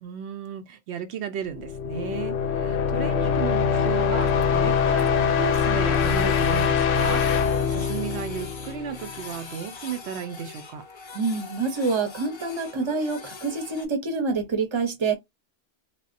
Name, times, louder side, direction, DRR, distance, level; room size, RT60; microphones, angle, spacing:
voice 1, 0.0-7.3 7.7-10.8, right 8 dB, 80° right, 0.8 m, -34 dB
sound 1, 1.5-9.2, left 6 dB, 90° left, 0.9 m, -23 dB
Printer, 2.3-2.4 2.6-2.7 3.0-3.1 3.4-3.5 3.8-3.9 4.1-5.1 5.6-13.9, left 4 dB, 40° left, 0.4 m, -43 dB
voice 2, 11.1-15.2, right 4 dB, 30° right, 0.8 m, -26 dB
3.3 x 2.2 x 2.4 m
omnidirectional pair, 1.1 m